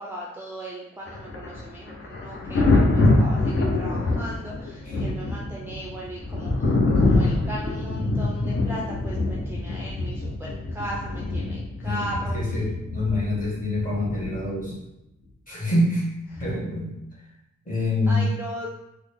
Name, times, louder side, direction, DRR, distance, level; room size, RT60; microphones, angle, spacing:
voice 1, 0.0-12.6 18.1-18.7, right 1 dB, 10° right, -4 dB, 0.4 m, -37 dB
Thunder, 1.1-14.7 16.4-16.6, left 2 dB, 50° left, 0.7 m, -25 dB
voice 2, 11.8-14.7 15.5-16.0 16.4-16.9 17.6-18.3, left 1 dB, 30° left, -6 dB, 1.4 m, -26 dB
3.9 x 2.0 x 3.5 m, 0.87 s
wide cardioid pair, 110°, 29 cm